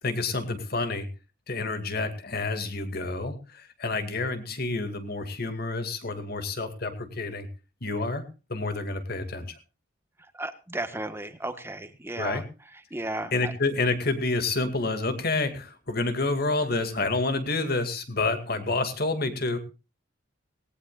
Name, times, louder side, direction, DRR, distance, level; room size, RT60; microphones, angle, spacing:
voice 1, 0.0-1.1 1.5-7.5 7.8-8.2 8.5-9.5 12.2-12.4 13.3-19.6, left 3 dB, 55° left, 8 dB, 2.4 m, -28 dB
voice 2, 10.3-12.4 12.9-13.5, right 1 dB, 15° right, 9 dB, 1.4 m, -34 dB
18.5 x 18.0 x 2.5 m, 0.31 s
head